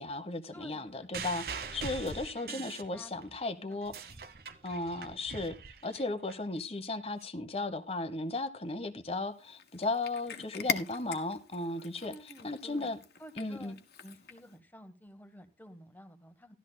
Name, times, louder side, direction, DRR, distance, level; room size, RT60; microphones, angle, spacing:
voice 1, 0.0-3.9 4.6-5.6 5.8-12.1 12.4-13.0 13.4-13.8, left 2 dB, 35° left, 1.0 m, -35 dB
voice 2, 0.5-1.3 2.4-3.3 3.5-4.2 12.0-12.9 13.2-16.6, equal, 10° left, 1.1 m, -53 dB
sound 1, 1.1-3.4 3.7-6.3 7.2-7.3, right 5 dB, 60° right, 1.0 m, -42 dB
Cat, 9.4-14.6, left 6 dB, 65° left, 1.4 m, -41 dB
16.0 x 12.5 x 2.2 m
head